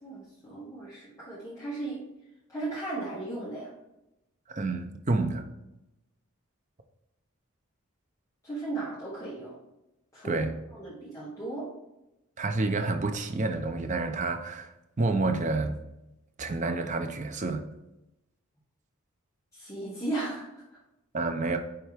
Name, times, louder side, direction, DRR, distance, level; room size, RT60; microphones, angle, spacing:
voice 1, 0.0-2.0 2.5-3.7 8.4-9.6 10.1-10.4 10.7-11.7 19.5-20.6, right 2 dB, 15° left, -10 dB, 1.8 m, -36 dB
voice 2, 4.5-5.5 10.2-10.5 12.4-14.7 15.0-15.7 16.4-17.6 21.1-21.6, right 3 dB, 35° right, 6 dB, 0.6 m, -29 dB
9.0 x 3.4 x 3.4 m, 0.91 s
head